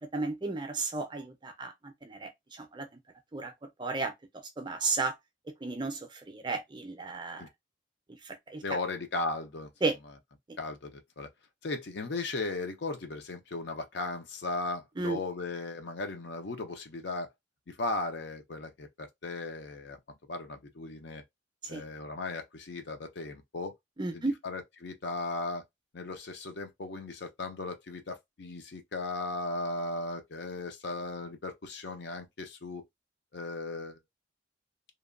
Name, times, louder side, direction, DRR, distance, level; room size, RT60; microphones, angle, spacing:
voice 1, 0.1-2.9 3.3-3.5 3.8-4.1 4.6-5.2 5.6-7.5 8.2-8.6 9.8-9.9 10.5-10.6 15.0-15.2 21.6-21.8 24.0-24.4, right 3 dB, 25° right, 0.4 m, -33 dB
voice 2, 8.6-9.7 10.6-11.3 11.6-17.3 17.7-20.0 20.3-21.2 21.7-23.7 24.1-25.6 25.9-32.8 33.3-34.0, left 3 dB, 60° left, 0.5 m, -36 dB
2.9 x 2.2 x 2.4 m
head